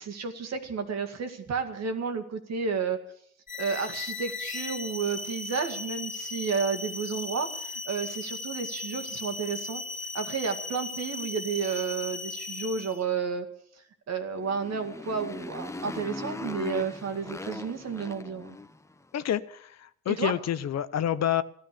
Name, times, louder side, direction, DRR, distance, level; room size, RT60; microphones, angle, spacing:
voice 1, 0.0-3.0 3.6-9.8 10.1-13.5 13.8-18.6 20.1-20.3, right 5 dB, 60° right, 2.1 m, -31 dB
sound 1, 3.5-13.0, left 3 dB, 25° left, 2.1 m, -37 dB
Motorcycle, 14.3-19.0, left 2 dB, 10° left, 0.8 m, -39 dB
voice 2, 19.1-21.4, left 11 dB, 60° left, 0.8 m, -28 dB
15.0 x 12.5 x 6.9 m
cardioid pair, 90°, 30 cm